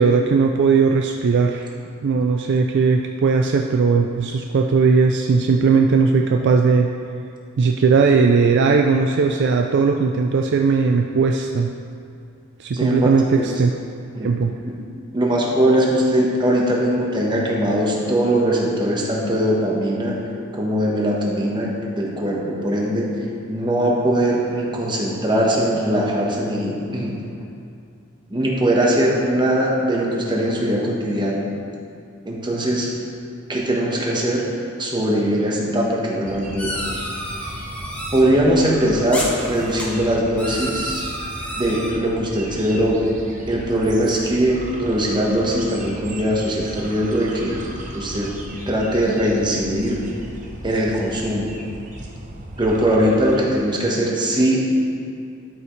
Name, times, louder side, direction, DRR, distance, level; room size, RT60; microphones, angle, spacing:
voice 1, 0.0-1.7 2.0-6.9 7.6-11.7 12.6-13.7 14.2-14.5, right 4 dB, 55° right, 3 dB, 0.3 m, -18 dB
voice 2, 12.7-13.5 14.1-14.3 14.7-14.8 15.1-20.2 20.5-21.7 22.0-23.1 23.5-27.2 28.3-31.4 32.2-32.9 33.5-34.5 34.8-36.8 38.1-41.0 41.6-43.1 43.5-47.6 47.9-48.3 48.7-50.0 50.6-51.5 52.6-54.6, right 1 dB, 20° right, -3 dB, 1.1 m, -20 dB
sound 1, 36.2-53.4, right 1 dB, 35° right, 0.8 m, -36 dB
sound 2, 36.6-38.2 39.1-39.8 40.4-41.9, equal, 5° left, 1.2 m, -30 dB
12.0 x 5.6 x 3.2 m, 2.5 s
head